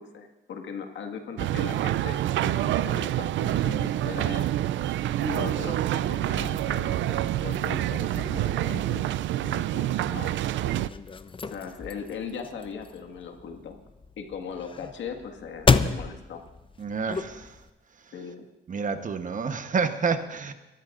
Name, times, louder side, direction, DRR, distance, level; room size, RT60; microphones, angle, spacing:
voice 1, 0.0-4.5 5.2-9.1 9.4-10.3 11.4-13.8 14.2-16.4 18.1-18.5, left 6 dB, 70° left, 4 dB, 1.9 m, -39 dB
sound 1, 1.4-10.9, right 13 dB, 70° right, 0.4 m, -27 dB
sound 2, 10.6-17.7, left 4 dB, 25° left, 0.7 m, -30 dB
voice 2, 16.8-17.6 18.7-20.5, right 5 dB, 40° right, 8 dB, 1.1 m, -29 dB
29.5 x 14.5 x 2.6 m, 1.0 s
cardioid pair, 90°, 20 cm